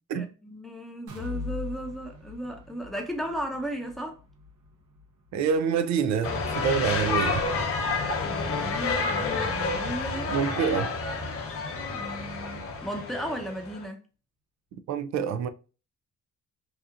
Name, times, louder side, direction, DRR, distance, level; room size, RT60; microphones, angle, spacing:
voice 1, 0.1-4.2 8.2-10.3 11.9-14.0, equal, ahead, 0.7 m, -35 dB
sound 1, 1.1-8.9 9.3-9.4 9.8-9.9, left 4 dB, 80° right, 0.9 m, -43 dB
voice 2, 5.3-7.4 10.3-10.9 14.9-15.5, right 7 dB, 65° right, 0.4 m, -26 dB
sound 2, 6.2-13.9, left 3 dB, 50° left, 0.8 m, -29 dB
2.8 x 2.4 x 2.4 m
cardioid pair, 90°, 30 cm